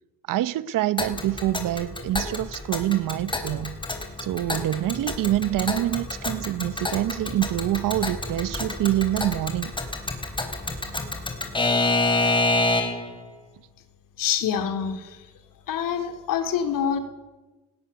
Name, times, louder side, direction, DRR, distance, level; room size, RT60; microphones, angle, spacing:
voice 1, 0.3-3.8 4.2-9.7, right 14 dB, 70° right, 1.0 m, -26 dB
Alarm / Clock, 1.0-13.1, left 2 dB, 15° left, 4.1 m, -28 dB
voice 2, 14.2-15.2 15.7-17.0, left 8 dB, 70° left, 3.4 m, -26 dB
19.5 x 16.0 x 9.7 m
cardioid pair, 105°, 34 cm